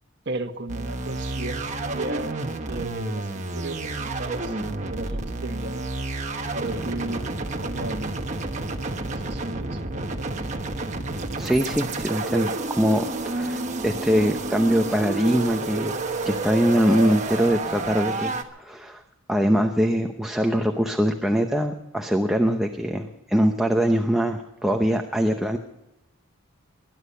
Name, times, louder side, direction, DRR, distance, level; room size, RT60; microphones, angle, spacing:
voice 1, 0.2-2.4 2.7-5.9 6.5-7.2 7.6-8.2 9.0-10.4, right 2 dB, 55° right, 5 dB, 1.4 m, -35 dB
sound 1, 0.7-18.4, right 2 dB, 35° right, 1.2 m, -30 dB
voice 2, 11.4-15.9 16.2-19.0 19.3-25.6, equal, ahead, 3 dB, 0.8 m, -23 dB
21.0 x 12.0 x 5.6 m, 0.96 s
head